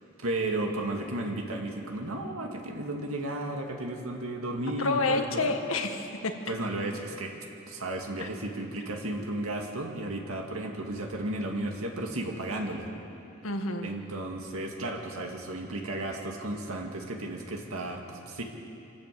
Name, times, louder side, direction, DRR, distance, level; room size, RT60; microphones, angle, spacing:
voice 1, 0.2-5.5 6.5-7.3 7.7-12.9 13.8-18.4, right 1 dB, 90° right, 1 dB, 2.1 m, -34 dB
voice 2, 4.8-6.3 8.2-8.3 13.4-13.9, left 3 dB, 75° left, 5 dB, 1.7 m, -29 dB
25.5 x 13.0 x 8.4 m, 2.8 s
head